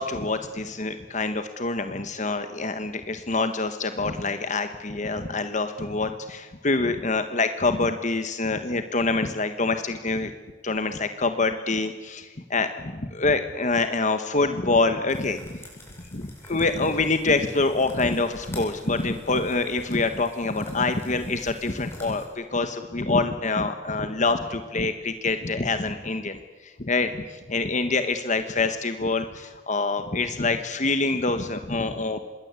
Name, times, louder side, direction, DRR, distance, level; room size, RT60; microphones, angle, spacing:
voice 1, 0.0-10.3 10.6-15.6 16.1-32.2, left 3 dB, 40° left, 8 dB, 1.3 m, -26 dB
sound 1, 15.1-22.3, left 1 dB, 15° left, 7.6 m, -47 dB
26.5 x 22.0 x 8.3 m, 1.3 s
head